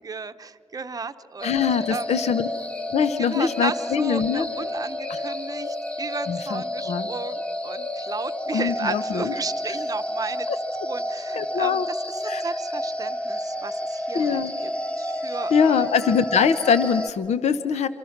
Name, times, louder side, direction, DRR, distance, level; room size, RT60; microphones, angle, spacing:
voice 1, 0.0-2.1 3.2-10.5 10.8-15.9, right 4 dB, 30° right, 9 dB, 0.9 m, -34 dB
voice 2, 1.4-2.5 2.9-4.5 5.1-5.2 6.3-7.1 8.5-9.3 11.4-11.9 12.2-12.4 14.1-14.5 15.5-17.9, left 6 dB, 75° left, 13 dB, 0.8 m, -23 dB
Halloween Creepy Music Bed, 1.4-17.1, left 1 dB, 10° left, 0.9 m, -30 dB
27.0 x 25.0 x 5.9 m, 2.4 s
cardioid pair, 100°, 11 cm